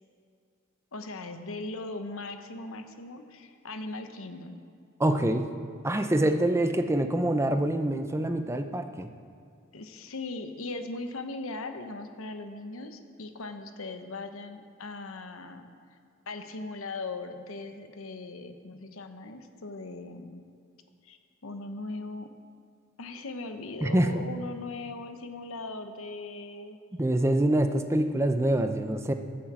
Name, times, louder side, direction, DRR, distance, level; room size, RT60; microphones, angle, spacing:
voice 1, 0.9-4.6 9.7-15.7 16.3-20.4 21.0-21.2 21.4-22.3 23.0-26.8, left 2 dB, 75° left, 7 dB, 1.0 m, -39 dB
voice 2, 5.0-5.5 5.8-9.1 23.8-24.2 27.0-29.1, right 1 dB, 15° right, 7 dB, 0.5 m, -25 dB
14.5 x 7.2 x 7.4 m, 2.4 s
head